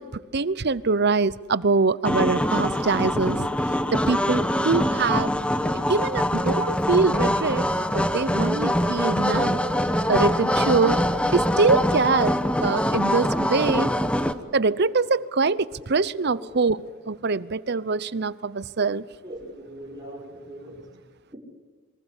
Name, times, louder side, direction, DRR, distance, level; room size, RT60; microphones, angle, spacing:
voice 1, 0.0-3.5 3.9-5.3 5.7-7.6 7.9-9.6 10.1-11.1 11.3-13.9 14.5-19.0, right 4 dB, 55° right, 17 dB, 0.8 m, -24 dB
sound 1, 2.0-14.3, left 1 dB, 5° left, 1.1 m, -24 dB
voice 2, 19.2-20.7, right 1 dB, 20° right, -3 dB, 5.6 m, -40 dB
28.0 x 24.0 x 8.2 m, 1.4 s
head